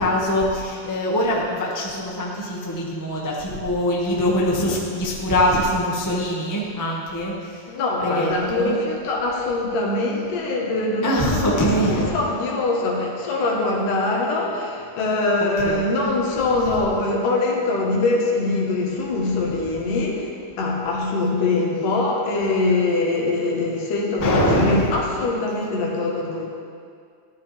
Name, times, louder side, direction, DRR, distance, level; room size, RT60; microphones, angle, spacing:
voice 1, 0.0-7.7 8.0-8.8 11.0-12.1 15.6-15.9 24.2-25.0, equal, 15° left, -4 dB, 0.6 m, -23 dB
voice 2, 7.7-20.3 20.6-26.4, left 2 dB, 75° left, -2 dB, 3.1 m, -23 dB
14.5 x 10.5 x 3.5 m, 2.2 s
omnidirectional pair, 3.8 m